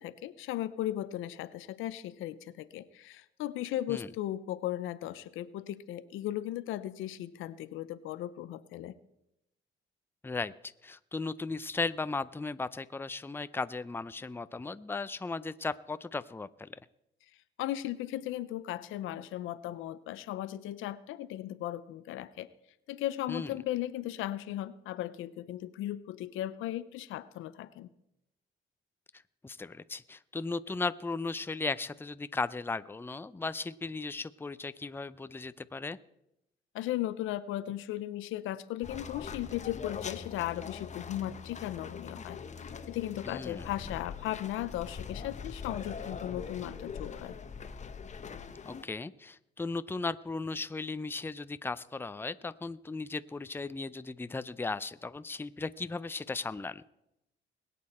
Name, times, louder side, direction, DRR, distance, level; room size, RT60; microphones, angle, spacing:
voice 1, 0.0-8.9 17.6-22.5 22.9-27.9 36.7-42.4 42.9-47.4, left 13 dB, 90° left, 15 dB, 0.6 m, -36 dB
voice 2, 10.8-16.8 23.3-23.5 29.4-36.0 43.3-43.7 48.7-56.8, left 3 dB, 10° left, 14 dB, 0.5 m, -36 dB
sound 1, 38.8-48.8, left 6 dB, 35° left, 0.9 m, -42 dB
21.0 x 8.5 x 4.3 m, 0.85 s
cardioid pair, 90°, 20 cm